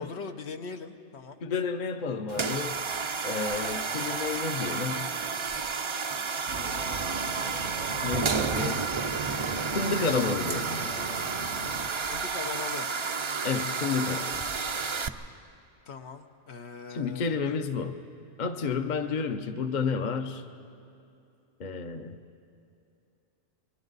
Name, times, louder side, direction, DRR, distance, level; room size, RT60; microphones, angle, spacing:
voice 1, 0.0-1.4 12.1-12.9 15.9-17.5, left 5 dB, 70° left, 6 dB, 1.1 m, -40 dB
voice 2, 1.4-2.8 3.2-5.1 8.0-8.9 9.7-10.9 13.4-14.4 16.9-18.0 18.4-20.5 21.6-22.2, left 5 dB, 45° left, 8 dB, 0.8 m, -30 dB
sound 1, 2.3-15.1, right 5 dB, 40° right, 0.4 m, -31 dB
sound 2, 6.5-11.9, right 2 dB, 90° right, 2.0 m, -39 dB
29.5 x 22.5 x 4.0 m, 2.7 s
omnidirectional pair, 1.2 m